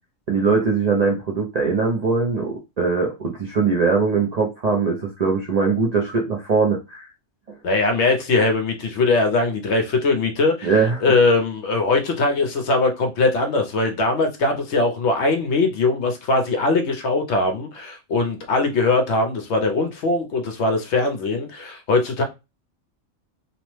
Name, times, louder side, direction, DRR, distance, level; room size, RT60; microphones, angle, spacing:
voice 1, 0.3-7.1 7.5-7.6 10.6-11.0, right 4 dB, 65° right, 0.4 m, -21 dB
voice 2, 7.6-10.7 11.0-22.2, left 3 dB, 65° left, 0.8 m, -21 dB
2.9 x 2.0 x 3.0 m
omnidirectional pair, 1.4 m